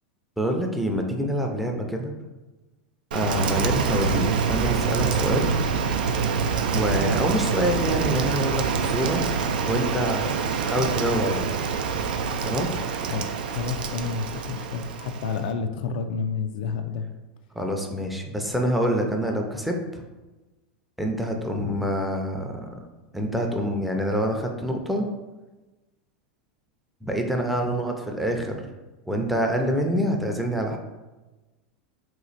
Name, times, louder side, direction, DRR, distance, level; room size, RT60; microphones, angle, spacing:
voice 1, 0.4-2.1 3.1-5.5 6.7-9.2 9.7-11.5 12.4-12.7 17.6-20.0 21.0-22.6 23.1-25.1 27.0-28.6 29.1-30.8, equal, ahead, 1 dB, 0.5 m, -26 dB
Rain, 3.1-15.5, right 6 dB, 85° right, 0.4 m, -26 dB
voice 2, 13.1-17.0 27.6-27.7, left 5 dB, 70° left, 7 dB, 0.3 m, -30 dB
3.0 x 2.4 x 4.0 m, 1.1 s
hypercardioid pair, 120°, 5 cm